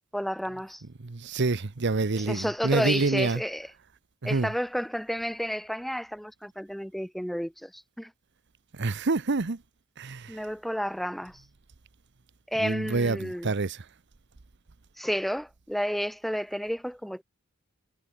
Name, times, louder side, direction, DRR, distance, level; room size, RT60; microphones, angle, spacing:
voice 1, 0.1-0.8 2.1-3.7 4.2-8.1 10.3-11.4 12.5-13.5 15.0-17.2, equal, ahead, 1.6 m, -31 dB
voice 2, 1.0-3.4 4.2-4.5 8.7-9.6 10.0-10.4 12.6-13.8, right 3 dB, 55° right, 0.8 m, -27 dB
head